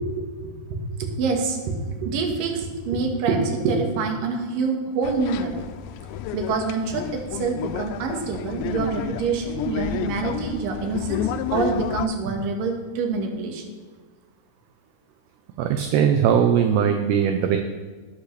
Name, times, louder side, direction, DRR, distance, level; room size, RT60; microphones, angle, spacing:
voice 1, 0.0-1.8 2.0-5.6 6.3-13.6, right 4 dB, 60° right, 2 dB, 2.7 m, -26 dB
sound 1, 5.0-12.1, left 9 dB, 85° left, 2.8 m, -31 dB
voice 2, 15.6-17.6, right 8 dB, 80° right, 5 dB, 2.6 m, -20 dB
18.0 x 8.2 x 3.3 m, 1.4 s
omnidirectional pair, 5.0 m